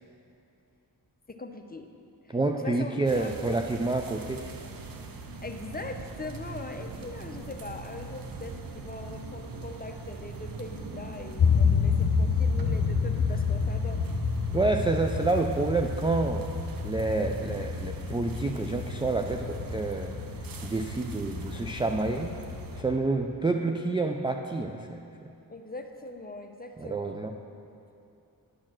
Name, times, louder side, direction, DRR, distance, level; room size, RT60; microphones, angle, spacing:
voice 1, 1.3-1.9 2.2-3.3 5.4-14.0 25.5-27.2, left 2 dB, 20° left, 5 dB, 0.6 m, -41 dB
voice 2, 2.3-4.4 14.5-16.5 16.8-20.1 20.6-22.4 22.8-25.0 26.8-27.3, right 3 dB, 15° right, 3 dB, 0.3 m, -28 dB
sound 1, 3.1-22.8, right 4 dB, 55° right, 0.7 m, -40 dB
sound 2, 11.4-23.0, left 6 dB, 60° left, 0.7 m, -29 dB
10.5 x 4.5 x 6.0 m, 2.7 s
wide cardioid pair, 75°, 41 cm